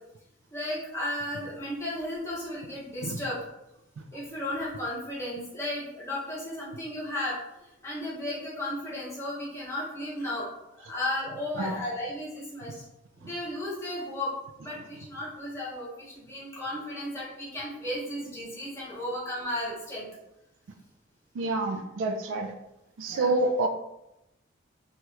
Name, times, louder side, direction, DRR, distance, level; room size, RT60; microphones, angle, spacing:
voice 1, 0.5-3.4 4.1-12.8 13.2-14.4 14.6-20.1 23.1-23.3, left 1 dB, 15° left, -7 dB, 0.9 m, -34 dB
voice 2, 21.3-22.5 23.0-23.7, right 2 dB, 70° right, 5 dB, 0.3 m, -28 dB
2.9 x 2.3 x 3.1 m, 0.88 s
head